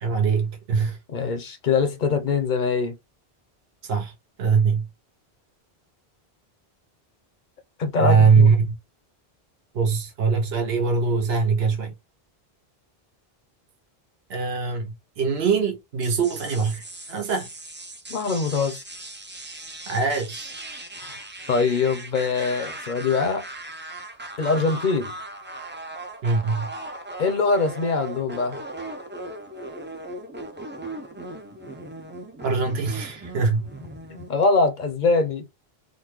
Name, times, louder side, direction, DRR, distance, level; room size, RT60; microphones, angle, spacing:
voice 1, 0.0-1.0 3.8-4.1 4.4-4.9 8.0-8.7 9.7-11.9 14.3-17.5 19.9-20.5 26.2-26.7 32.4-33.7, right 5 dB, 75° right, 1.0 m, -22 dB
voice 2, 1.1-3.0 7.8-8.5 18.1-18.8 21.0-23.4 24.4-25.1 27.2-28.6 34.1-35.4, left 4 dB, 55° left, 0.7 m, -23 dB
sound 1, 16.0-34.4, right 2 dB, 20° right, 0.3 m, -38 dB
3.8 x 2.1 x 3.0 m
omnidirectional pair, 1.0 m